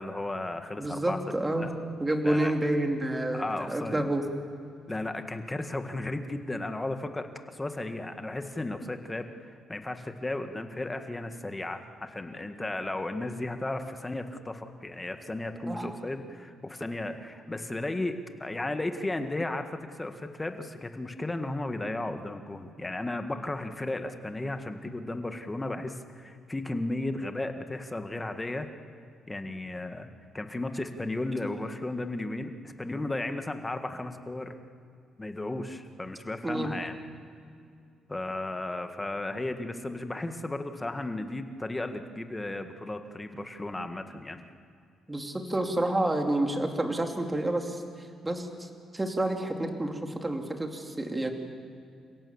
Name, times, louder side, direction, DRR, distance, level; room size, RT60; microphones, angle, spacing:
voice 1, 0.0-1.2 1.6-1.7 2.2-2.5 3.3-4.0 4.9-28.7 29.3-30.1 30.3-34.5 35.2-36.9 38.1-44.4, left 2 dB, 15° left, 7 dB, 1.8 m, -34 dB
voice 2, 0.8-1.7 2.0-4.2 15.7-15.9 36.4-36.7 45.1-47.8 48.2-51.3, right 1 dB, 15° right, 3 dB, 2.7 m, -29 dB
29.5 x 17.0 x 7.2 m, 2.5 s
cardioid pair, 90°, 0 cm